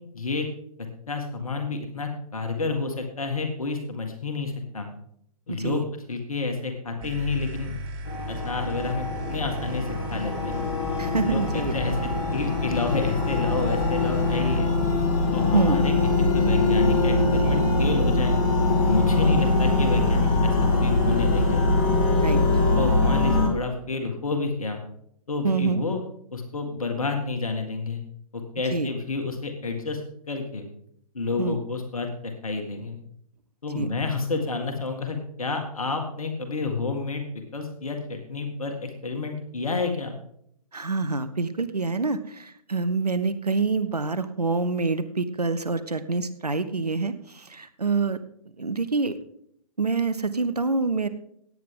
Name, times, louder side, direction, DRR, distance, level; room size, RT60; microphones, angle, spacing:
voice 1, 0.1-0.5 1.1-4.9 5.5-7.8 8.3-10.6 11.2-14.7 15.3-18.4 18.9-21.6 22.3-22.4 22.7-24.8 25.3-26.0 26.3-28.0 28.3-30.0 30.3-30.7 31.1-33.0 33.6-40.1, left 3 dB, 65° left, 5 dB, 1.9 m, -29 dB
voice 2, 5.5-5.8 11.0-11.8 15.5-15.8 19.2-19.4 22.2-22.4 25.4-25.8 28.7-28.9 31.4-31.6 33.7-33.9 40.7-48.2 48.6-49.2 49.8-51.1, right 4 dB, 85° right, 12 dB, 0.9 m, -26 dB
sound 1, 7.0-14.6, equal, 35° right, 2.4 m, -36 dB
sound 2, 8.1-23.5, left 2 dB, 25° left, 2.3 m, -23 dB
16.5 x 9.4 x 3.8 m, 0.70 s
figure-of-eight pair, 125°, 20 cm